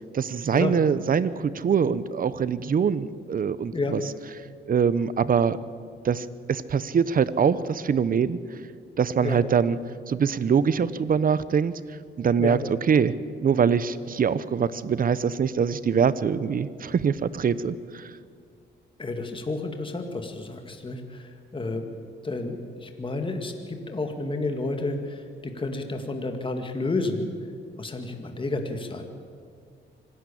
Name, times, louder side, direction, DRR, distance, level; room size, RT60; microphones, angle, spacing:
voice 1, 0.1-4.0 4.7-5.6 6.0-8.4 9.0-9.8 10.1-11.8 12.2-13.1 13.4-18.1, right 6 dB, 45° right, 16 dB, 0.9 m, -23 dB
voice 2, 19.0-21.9 22.2-27.3 27.8-29.1, left 2 dB, 25° left, 5 dB, 2.1 m, -31 dB
25.0 x 12.5 x 8.5 m, 2.2 s
cardioid pair, 90°, 20 cm